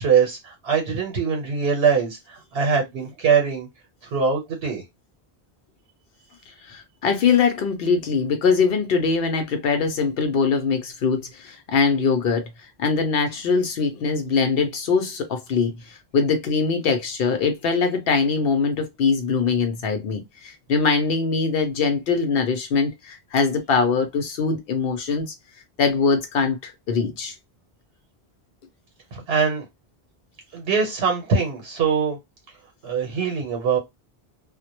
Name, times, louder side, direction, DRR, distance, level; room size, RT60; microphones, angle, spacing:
voice 1, 0.0-3.7 4.0-4.8 29.1-29.7 30.5-32.2 32.8-33.8, right 6 dB, 85° right, 1.0 m, -22 dB
voice 2, 6.5-25.3 25.8-27.3, left 5 dB, 70° left, 0.7 m, -22 dB
2.1 x 2.1 x 2.8 m
omnidirectional pair, 1.1 m